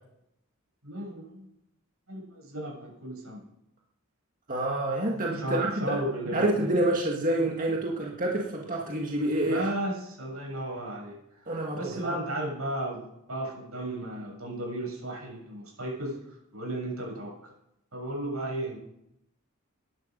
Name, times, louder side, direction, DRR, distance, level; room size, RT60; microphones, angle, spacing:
voice 1, 0.8-1.4 2.1-3.4 5.4-6.7 9.4-11.1 11.8-16.2 16.5-17.3 17.9-18.8, right 1 dB, 85° right, -2 dB, 7.7 m, -34 dB
voice 2, 4.5-6.0 6.3-9.7 11.5-12.2, right 1 dB, 40° right, -1 dB, 2.0 m, -28 dB
20.0 x 11.5 x 5.4 m, 0.83 s
head